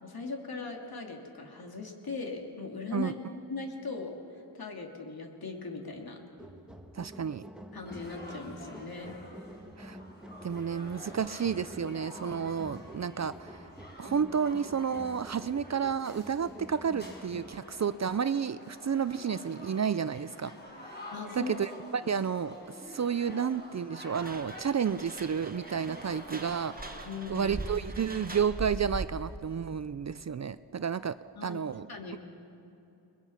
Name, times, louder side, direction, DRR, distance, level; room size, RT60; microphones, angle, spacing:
voice 1, 0.0-3.1 3.5-4.1 4.5-6.2 7.7-9.5 10.1-10.2 12.7-12.8 21.1-21.6 22.0-22.1 27.0-27.5 31.3-32.2, left 3 dB, 60° left, 1 dB, 3.2 m, -39 dB
sound 1, 6.4-17.6, equal, ahead, 1.6 m, -49 dB
voice 2, 6.9-7.4 9.8-10.0 10.4-13.7 14.0-20.5 20.8-22.5 22.9-26.9 27.3-31.2 31.4-31.9, right 7 dB, 40° right, 14 dB, 0.5 m, -31 dB
sound 2, 7.9-27.1, left 1 dB, 25° left, 5.0 m, -48 dB
sound 3, 24.1-29.3, right 2 dB, 20° right, 1.5 m, -41 dB
30.0 x 21.5 x 5.8 m, 3.0 s
wide cardioid pair, 115°, 42 cm